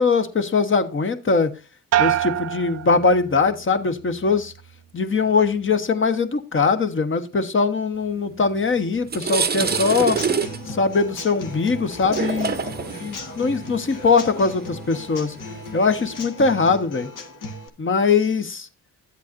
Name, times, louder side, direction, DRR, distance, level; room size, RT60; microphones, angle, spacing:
voice 1, 0.0-1.5 2.0-4.5 4.9-10.2 10.7-12.6 13.0-15.4 15.7-17.1 17.8-18.7, left 4 dB, 35° left, 1.3 m, -21 dB
sound 1, 1.9-3.6 4.0-4.6, right 12 dB, 45° right, 0.5 m, -25 dB
sound 2, 8.5-8.6 8.9-16.3, right 5 dB, 25° right, 0.8 m, -28 dB
Human voice / Acoustic guitar / Drum, 9.7-17.7, left 2 dB, 60° left, 1.7 m, -37 dB
13.0 x 8.2 x 2.6 m
supercardioid pair, 60°, 36 cm